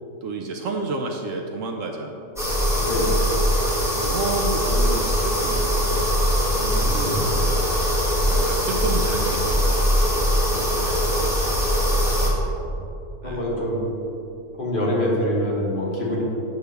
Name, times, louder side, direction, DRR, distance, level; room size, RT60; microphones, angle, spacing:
voice 1, 0.2-2.2 3.0-3.4 4.0-7.6 8.2-12.2 13.2-13.5, right 3 dB, 70° right, 3 dB, 0.9 m, -32 dB
sound 1, 2.4-12.3, equal, ahead, 1.2 m, -21 dB
voice 2, 2.8-3.1 6.6-7.2 12.6-12.7 13.2-13.8 14.6-16.2, left 1 dB, 40° left, -5 dB, 1.5 m, -25 dB
7.8 x 6.8 x 3.4 m, 2.8 s
omnidirectional pair, 1.5 m